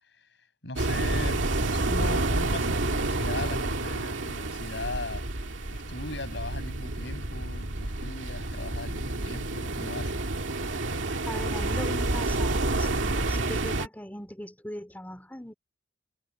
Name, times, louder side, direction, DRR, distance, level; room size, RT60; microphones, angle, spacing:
voice 1, 0.6-5.2 5.7-10.3, left 2 dB, 70° left, 6.8 m, -38 dB
sound 1, 0.8-13.9, right 2 dB, 80° right, 2.1 m, -29 dB
voice 2, 11.3-15.5, left 1 dB, 10° left, 2.9 m, -40 dB
head